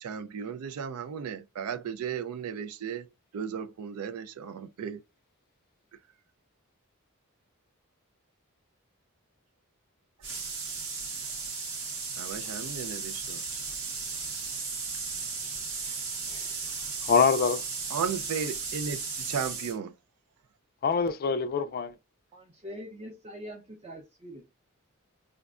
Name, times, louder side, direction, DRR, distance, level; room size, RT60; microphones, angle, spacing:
voice 1, 0.0-3.1 3.3-5.0 12.2-13.4 17.9-19.9, right 7 dB, 85° right, 0.4 m, -35 dB
sound 1, 10.2-19.8, right 4 dB, 60° right, 0.8 m, -35 dB
voice 2, 17.0-17.6 20.8-21.9, left 5 dB, 45° left, 0.3 m, -24 dB
voice 3, 22.3-24.4, equal, 25° right, 0.6 m, -43 dB
5.0 x 2.1 x 2.3 m
head